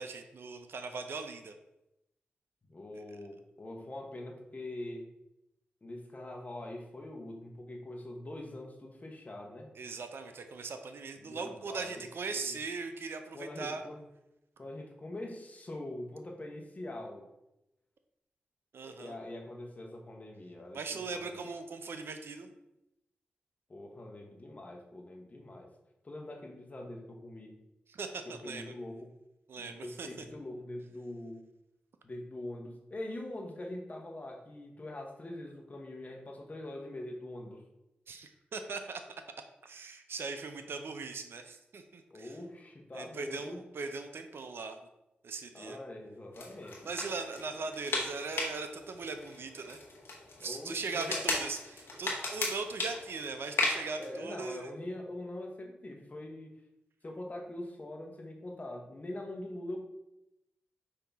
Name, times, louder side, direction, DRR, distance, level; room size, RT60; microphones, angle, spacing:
voice 1, 0.0-1.5 2.9-3.2 9.8-13.8 18.7-19.2 20.7-22.5 27.9-28.6 29.5-30.1 38.1-39.0 39.6-42.4 42.9-44.8 45.2-45.8 46.8-49.8 50.4-54.7, right 4 dB, 70° right, 7 dB, 0.4 m, -39 dB
voice 2, 2.7-5.1 5.8-9.7 11.2-12.6 13.3-14.0 14.6-17.3 18.9-21.5 23.7-25.7 26.0-27.5 28.2-29.1 29.6-31.5 32.0-37.6 42.1-43.6 45.5-46.9 50.4-51.3 54.0-56.6 57.0-59.9, left 1 dB, 40° left, 2 dB, 1.0 m, -43 dB
sound 1, 46.3-54.1, left 2 dB, 70° left, 1.0 m, -37 dB
5.4 x 2.8 x 3.5 m, 0.90 s
cardioid pair, 50°, 4 cm